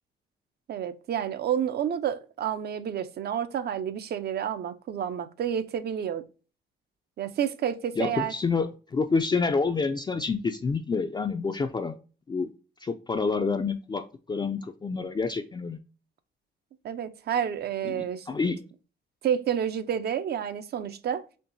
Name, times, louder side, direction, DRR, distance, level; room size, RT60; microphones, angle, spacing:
voice 1, 0.7-6.2 7.2-8.3 16.8-18.4 19.2-21.3, right 9 dB, 55° right, 0.5 m, -30 dB
voice 2, 8.0-12.0 12.3-12.5 12.8-15.8 17.8-18.6, left 4 dB, 20° left, 0.3 m, -28 dB
4.4 x 2.9 x 2.5 m
cardioid pair, 90°, 20 cm